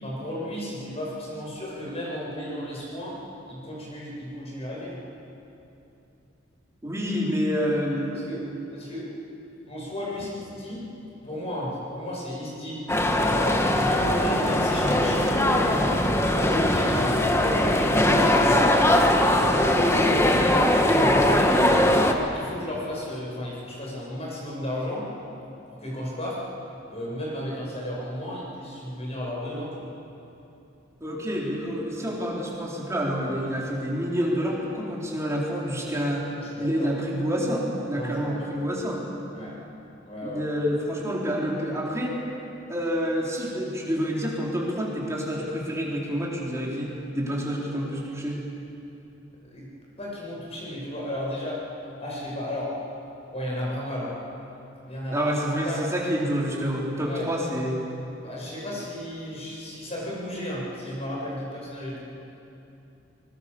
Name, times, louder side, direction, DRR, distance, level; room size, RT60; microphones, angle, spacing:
voice 1, 0.0-5.0 8.1-8.4 8.7-9.1 9.7-10.8 11.2-12.8 13.3-18.0 18.4-21.6 22.3-25.1 25.7-26.4 26.9-29.9 36.4-36.9 37.9-38.7 39.3-39.6 40.0-40.5 49.4-49.7 50.0-51.6 52.0-52.8 53.3-54.2 54.8-55.4 55.6-55.8 57.1-57.3 58.2-62.0, left 1 dB, 35° left, -4 dB, 7.1 m, -33 dB
voice 2, 6.8-8.3 31.0-36.3 36.6-39.0 40.2-42.1 42.7-48.4 55.1-57.8, equal, 15° right, -3 dB, 4.3 m, -28 dB
sound 1, 12.9-22.1, left 1 dB, 15° left, 1.5 m, -21 dB
25.0 x 21.0 x 7.1 m, 2.9 s
head